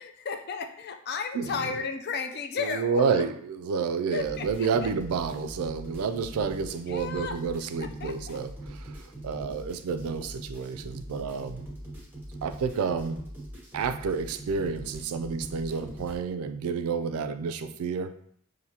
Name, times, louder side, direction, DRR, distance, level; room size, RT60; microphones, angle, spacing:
voice 1, 0.0-3.2 4.1-4.9 6.9-7.4 7.8-8.4, left 5 dB, 45° left, 7 dB, 0.4 m, -34 dB
voice 2, 1.3-1.7 2.6-11.6 12.4-13.2 13.7-18.1, right 5 dB, 80° right, 10 dB, 0.3 m, -30 dB
sound 1, 4.2-16.2, right 1 dB, 10° right, 0.8 m, -42 dB
5.7 x 2.6 x 2.7 m, 0.66 s
head